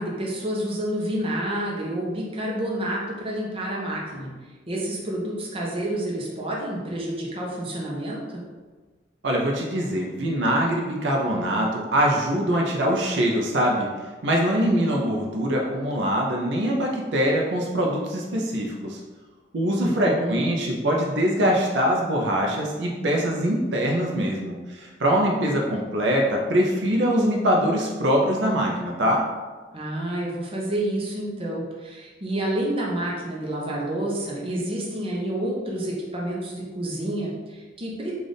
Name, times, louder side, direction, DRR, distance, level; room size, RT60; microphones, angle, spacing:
voice 1, 0.0-4.3 4.7-8.4 19.7-20.9 29.7-38.1, right 1 dB, 30° right, -3 dB, 0.7 m, -29 dB
voice 2, 9.2-13.9 14.2-19.0 19.5-29.2, equal, 75° right, -1 dB, 0.5 m, -23 dB
3.3 x 2.5 x 3.9 m, 1.3 s
head